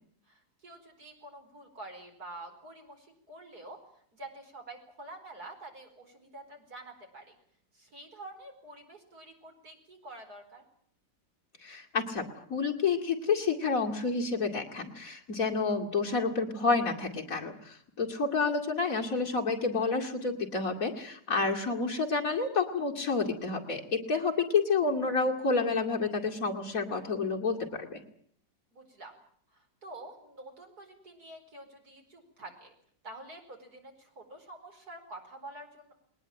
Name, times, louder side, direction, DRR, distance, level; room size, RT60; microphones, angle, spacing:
voice 1, 0.3-3.8 4.1-7.3 7.7-10.6 28.7-29.1 29.5-32.7 33.0-35.9, right 2 dB, 55° right, 4 dB, 5.2 m, -48 dB
voice 2, 11.6-28.0, left 4 dB, 45° left, 1 dB, 2.8 m, -29 dB
21.0 x 19.5 x 8.9 m, 0.63 s
omnidirectional pair, 2.0 m